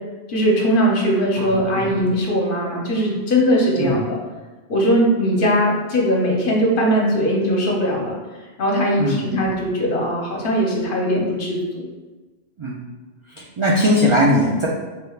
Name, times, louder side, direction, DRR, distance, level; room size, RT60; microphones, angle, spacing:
voice 1, 0.3-4.2 4.7-8.2 8.6-11.9, equal, 60° left, -2 dB, 0.9 m, -20 dB
voice 2, 1.4-1.9 3.8-4.0 9.0-9.3 12.6-12.8 13.4-14.7, equal, 55° right, -4 dB, 0.3 m, -20 dB
4.6 x 3.2 x 2.3 m, 1.2 s
omnidirectional pair, 1.1 m